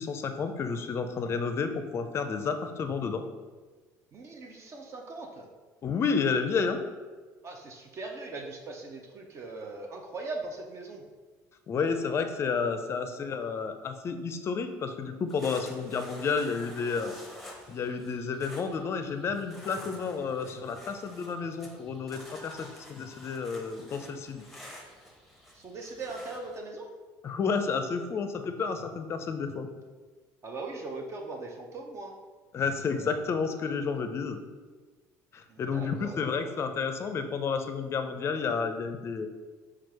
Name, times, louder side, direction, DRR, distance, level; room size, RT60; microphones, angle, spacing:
voice 1, 0.0-3.2 5.8-6.8 11.7-17.2 17.7-24.4 27.2-29.7 32.5-34.4 35.3-39.3, left 5 dB, 35° left, 7 dB, 0.4 m, -31 dB
voice 2, 4.1-5.5 7.4-11.0 25.5-26.9 30.4-32.2 35.5-36.5, right 3 dB, 40° right, 1 dB, 0.5 m, -40 dB
sound 1, 15.3-26.6, left 1 dB, ahead, 0.8 m, -50 dB
4.4 x 2.4 x 4.7 m, 1.3 s
cardioid pair, 115°, 7 cm